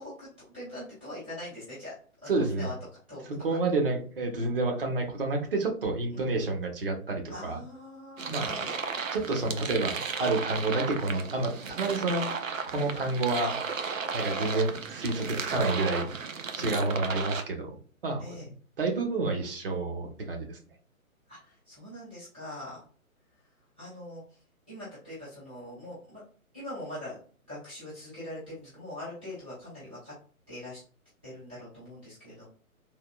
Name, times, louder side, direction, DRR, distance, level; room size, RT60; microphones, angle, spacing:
voice 1, 0.0-1.9 2.2-2.7 3.1-3.3 6.1-6.3 7.3-8.7 16.5-16.8 18.2-18.5 21.3-22.8 23.8-24.4 24.7-26.2 26.5-27.2 27.5-30.1 30.5-30.8 31.2-32.5, left 1 dB, 10° right, -12 dB, 0.5 m, -42 dB
voice 2, 2.3-2.7 3.2-7.6 8.3-8.6 9.1-13.6 14.1-16.1 16.5-17.8 18.0-18.5 18.8-20.6, right 3 dB, 40° right, 2 dB, 1.0 m, -29 dB
sound 1, 8.2-17.4, right 5 dB, 60° right, 0.7 m, -34 dB
3.6 x 2.8 x 2.3 m, 0.43 s
figure-of-eight pair, 135°, 43 cm